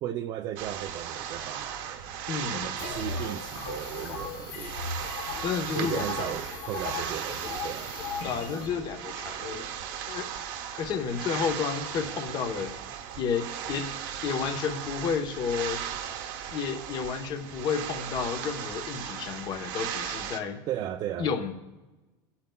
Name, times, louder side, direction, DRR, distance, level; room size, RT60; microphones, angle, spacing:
voice 1, 0.0-2.2 2.5-4.8 5.7-7.9 20.7-21.3, right 11 dB, 40° right, 0.4 m, -36 dB
sound 1, 0.6-20.4, right 9 dB, 70° right, 1.1 m, -37 dB
voice 2, 2.3-2.7 5.4-6.4 8.2-9.7 10.1-10.3 10.8-12.7 13.2-13.9 14.2-15.8 16.5-20.6 21.2-21.5, left 6 dB, 40° left, 1.0 m, -31 dB
sound 2, 2.8-8.7, left 5 dB, 85° left, 1.6 m, -37 dB
21.0 x 8.6 x 2.3 m
supercardioid pair, 145°, 11 cm